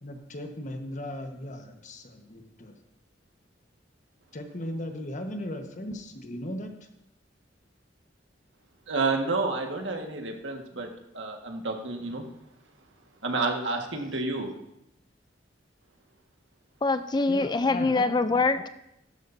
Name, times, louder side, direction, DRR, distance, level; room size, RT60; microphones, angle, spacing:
voice 1, 0.0-2.8 4.3-6.9 17.3-18.1, left 1 dB, 40° left, 4 dB, 1.3 m, -37 dB
voice 2, 8.9-10.9 11.1-12.2 13.2-14.5, right 3 dB, 90° right, 3 dB, 1.6 m, -29 dB
voice 3, 16.8-18.7, left 3 dB, 25° left, 11 dB, 0.4 m, -24 dB
15.0 x 12.5 x 2.7 m, 0.83 s
head